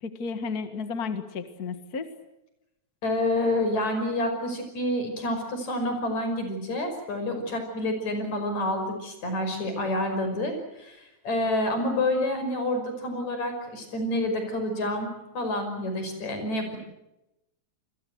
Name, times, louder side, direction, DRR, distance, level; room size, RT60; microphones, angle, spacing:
voice 1, 0.0-2.1, left 5 dB, 35° left, 9 dB, 1.8 m, -33 dB
voice 2, 3.0-15.1 15.4-16.8, left 1 dB, 70° left, 6 dB, 6.9 m, -28 dB
29.0 x 22.0 x 8.0 m, 0.92 s
omnidirectional pair, 3.4 m